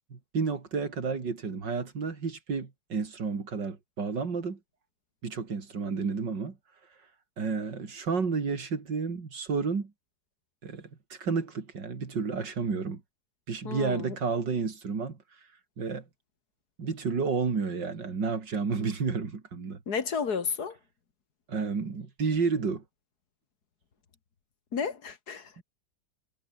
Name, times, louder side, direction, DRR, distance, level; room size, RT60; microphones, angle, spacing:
voice 1, 0.1-4.6 5.2-6.6 7.4-9.9 10.6-13.0 13.5-15.2 15.8-16.0 16.8-19.8 21.5-22.8 25.6-25.7, right 5 dB, 85° right, 3.5 m, -31 dB
voice 2, 13.6-14.2 19.9-20.8 24.7-25.5, left 6 dB, 65° left, 2.4 m, -32 dB
omnidirectional pair, 1.9 m